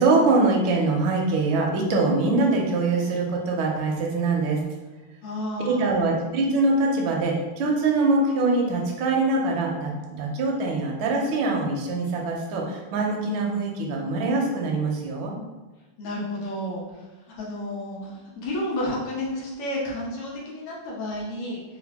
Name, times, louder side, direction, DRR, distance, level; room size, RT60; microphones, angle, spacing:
voice 1, 0.0-4.6 5.7-15.4, right 3 dB, 70° right, 0 dB, 1.4 m, -23 dB
voice 2, 5.2-6.1 16.0-17.0 17.4-21.6, left 1 dB, 85° left, -5 dB, 1.9 m, -31 dB
4.6 x 2.2 x 3.5 m, 1.2 s
omnidirectional pair, 2.4 m